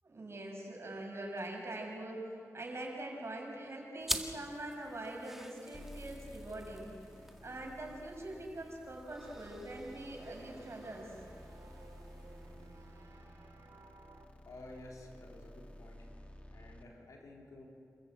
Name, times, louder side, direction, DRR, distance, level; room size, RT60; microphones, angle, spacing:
voice 1, 0.0-6.9 7.4-11.1, right 1 dB, 50° right, -1 dB, 6.3 m, -43 dB
sound 1, 4.0-13.0, equal, 5° right, 1.8 m, -46 dB
sound 2, 5.7-16.8, left 1 dB, 20° left, 2.1 m, -54 dB
sound 3, 9.2-14.3, right 3 dB, 70° right, 2.7 m, -57 dB
voice 2, 14.4-16.1 16.5-17.7, left 2 dB, 80° left, -2 dB, 4.2 m, -52 dB
27.5 x 14.0 x 8.1 m, 2.5 s
cardioid pair, 65°, 6 cm